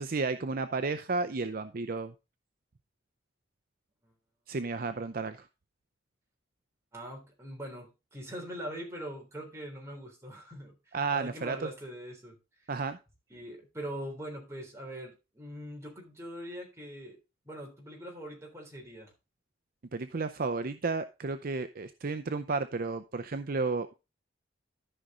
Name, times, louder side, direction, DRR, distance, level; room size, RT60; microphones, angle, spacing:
voice 1, 0.0-2.1 4.5-5.5 10.9-11.7 12.7-13.0 19.9-23.9, right 4 dB, 50° right, 10 dB, 0.5 m, -32 dB
voice 2, 6.9-12.4 13.3-17.2 17.5-19.1, equal, 15° right, 0 dB, 3.6 m, -42 dB
13.5 x 5.5 x 3.7 m, 0.27 s
head